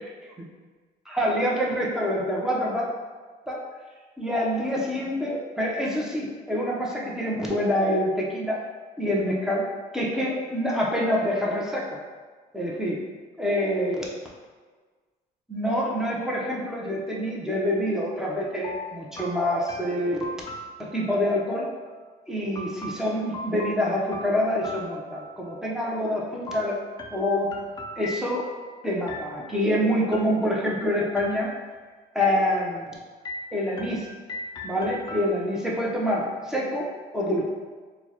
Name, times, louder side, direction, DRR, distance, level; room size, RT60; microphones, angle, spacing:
voice 1, 1.1-2.9 3.5-3.6 4.2-8.6 9.0-9.6 9.9-12.0 12.5-12.9 13.4-14.0 15.5-20.2 20.8-21.7 22.3-26.7 27.1-27.5 28.0-28.4 28.8-31.5 32.1-32.8 33.5-34.1 34.6-36.9 37.1-37.5, equal, 5° right, -4 dB, 0.7 m, -26 dB
sound 1, 18.6-21.4 22.5-25.6 26.5-28.7 29.1-29.7 30.1-30.8 31.2-31.8 32.2-32.9 33.2-35.7, left 1 dB, 25° left, 0.4 m, -40 dB
4.4 x 2.2 x 2.9 m, 1.4 s
cardioid pair, 110°, 17 cm